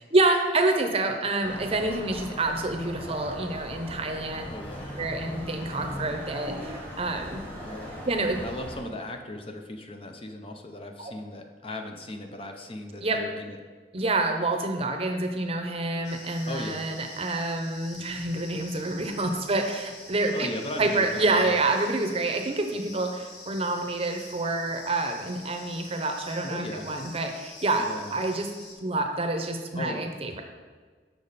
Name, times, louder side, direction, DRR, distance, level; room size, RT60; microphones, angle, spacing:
voice 1, 0.1-4.5 5.0-7.4 8.0-8.4 13.0-13.2 13.9-20.5 20.8-28.5 28.8-30.4, right 2 dB, 35° right, 5 dB, 0.7 m, -27 dB
sound 1, 1.4-8.8, equal, 10° left, 1.3 m, -39 dB
voice 2, 4.5-5.0 7.6-8.0 8.4-13.6 16.5-16.9 20.3-21.6 26.5-26.9 27.8-28.2 29.7-30.0, left 1 dB, 30° left, 4 dB, 0.6 m, -37 dB
sound 2, 16.0-28.7, left 2 dB, 70° left, 1.5 m, -46 dB
6.9 x 6.1 x 4.1 m, 1.5 s
head